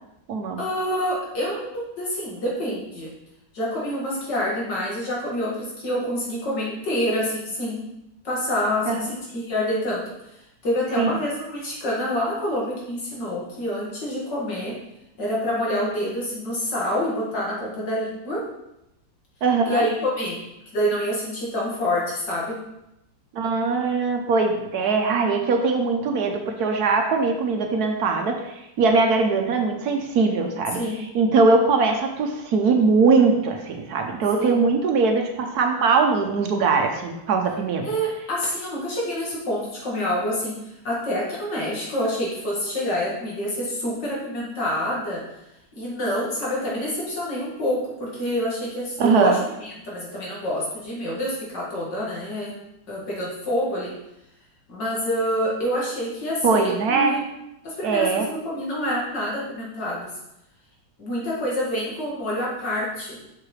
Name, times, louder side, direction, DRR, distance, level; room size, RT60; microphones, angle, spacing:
voice 1, 0.6-3.1 3.5-7.9 8.2-10.1 10.6-14.8 15.2-18.5 19.7-20.4 20.7-22.6 30.7-31.0 34.4-34.6 37.8-45.2 45.8-52.6 52.9-53.9 54.7-57.3 57.6-60.1 61.0-63.2, equal, 75° left, -5 dB, 2.6 m, -27 dB
voice 2, 19.4-19.8 23.3-28.4 28.8-30.8 31.1-37.9 49.0-49.4 56.4-57.2 57.8-58.3, right 4 dB, 65° right, 4 dB, 1.2 m, -21 dB
7.1 x 5.8 x 3.2 m, 0.87 s
omnidirectional pair, 1.9 m